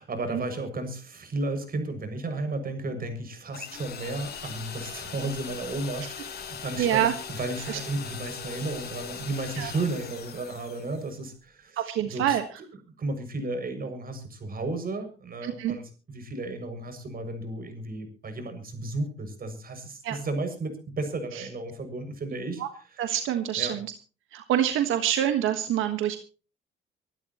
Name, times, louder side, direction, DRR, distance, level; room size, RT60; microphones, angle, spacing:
voice 1, 0.0-7.0 7.3-12.4 13.0-22.6 23.6-23.7, right 2 dB, 45° right, 7 dB, 6.6 m, -33 dB
sound 1, 3.5-11.2, left 6 dB, 55° left, 4.6 m, -40 dB
voice 2, 6.8-7.1 7.7-7.8 9.6-9.7 11.8-12.4 15.4-15.8 20.0-20.2 21.3-21.5 22.6-22.7 23.0-23.9 24.3-26.2, right 11 dB, 85° right, 7 dB, 1.5 m, -26 dB
26.0 x 12.0 x 3.0 m, 0.36 s
cardioid pair, 90°, 20 cm